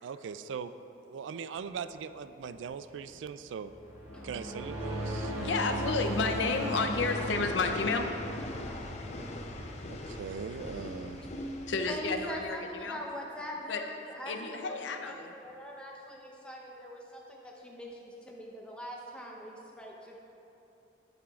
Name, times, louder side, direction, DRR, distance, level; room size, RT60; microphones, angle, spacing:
voice 1, 0.0-0.7 1.0-3.7 4.2-5.3 9.9-11.2, right 6 dB, 85° right, 12 dB, 0.3 m, -40 dB
sound 1, 1.6-12.4, left 1 dB, 35° left, 0.5 m, -43 dB
sound 2, 3.7-10.3, right 1 dB, 15° right, 1.1 m, -37 dB
voice 2, 5.4-8.1 11.7-13.0 13.7-13.8 14.3-15.3, left 4 dB, 80° left, 5 dB, 0.6 m, -31 dB
voice 3, 11.9-20.2, equal, 5° left, -2 dB, 0.8 m, -42 dB
10.5 x 8.7 x 2.4 m, 3.0 s
head